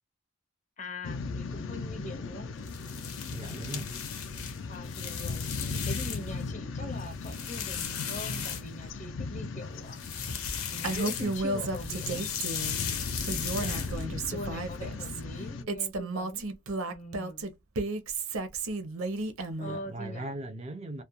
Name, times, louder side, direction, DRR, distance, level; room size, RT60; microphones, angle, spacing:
voice 1, 0.8-2.5 4.7-5.4 5.8-10.0 10.7-12.2 13.9-16.4 16.9-17.5 19.6-20.3, left 1 dB, 35° left, 0.7 m, -42 dB
sound 1, 1.0-15.6, left 4 dB, 65° left, 0.4 m, -38 dB
sound 2, 2.6-6.4 6.8-9.1 9.8-11.5 11.7-14.3, left 8 dB, 90° left, 0.7 m, -37 dB
voice 2, 3.3-3.9 13.5-14.0 19.6-21.0, right 2 dB, 30° right, 0.4 m, -39 dB
Female speech woman speaking, 10.8-12.8 13.2-15.2 15.7-19.8, right 3 dB, 80° right, 0.6 m, -33 dB
2.3 x 2.1 x 2.8 m
head